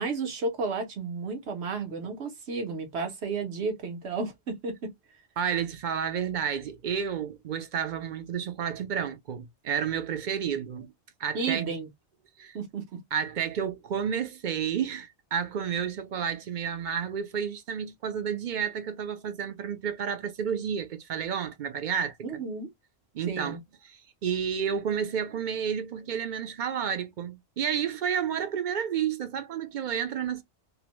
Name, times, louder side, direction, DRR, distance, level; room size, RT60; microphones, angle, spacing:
voice 1, 0.0-4.9 11.3-11.9 12.5-13.0 22.2-22.7 23.3-23.6, right 4 dB, 75° right, 1.1 m, -32 dB
voice 2, 5.4-10.9 11.2-11.7 12.4-12.6 13.1-22.2 23.1-23.6 23.9-30.4, right 7 dB, 55° right, 0.6 m, -31 dB
2.7 x 2.1 x 2.9 m
omnidirectional pair, 1.1 m